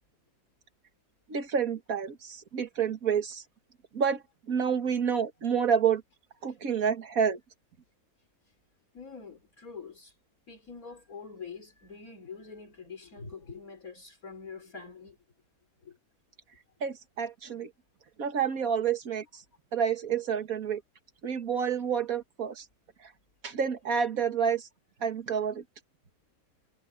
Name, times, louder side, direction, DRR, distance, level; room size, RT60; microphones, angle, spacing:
voice 1, 1.3-3.4 3.9-4.2 4.5-6.0 6.4-7.4 16.8-17.7 18.2-19.4 19.7-20.8 21.2-22.7 23.4-24.7 25.0-25.6, right 7 dB, 65° right, 2.1 m, -29 dB
voice 2, 8.9-10.2 10.5-15.2 15.8-16.0, left 5 dB, 65° left, 4.4 m, -45 dB
omnidirectional pair, 1.6 m